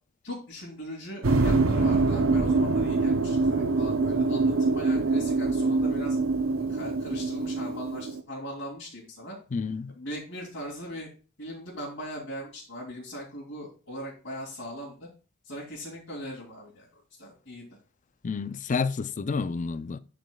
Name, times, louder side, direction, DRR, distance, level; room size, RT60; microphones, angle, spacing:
voice 1, 0.2-6.2 6.6-9.4 9.9-11.1 11.4-15.1 15.4-16.9 17.2-17.6, equal, 70° left, 2.6 m, -39 dB
sound 1, 1.2-8.2, right 3 dB, 90° right, 0.8 m, -24 dB
voice 2, 9.5-9.9 18.2-20.0, left 4 dB, 40° left, 0.4 m, -29 dB
11.5 x 5.1 x 2.3 m
head